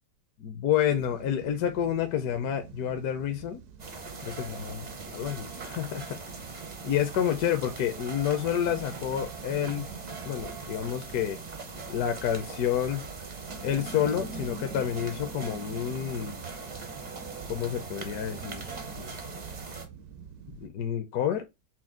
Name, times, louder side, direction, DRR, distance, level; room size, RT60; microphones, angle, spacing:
voice 1, 0.4-3.6 4.2-6.2 6.8-9.9 10.2-11.4 11.9-13.0 13.6-16.4 17.5-18.7 19.0-19.2 20.5-21.4, left 9 dB, 70° left, 1.1 m, -29 dB
sound 1, 0.9-20.7, right 6 dB, 70° right, 1.1 m, -45 dB
sound 2, 3.8-19.9, right 4 dB, 45° right, 0.5 m, -41 dB
5.9 x 2.2 x 3.6 m
omnidirectional pair, 1.8 m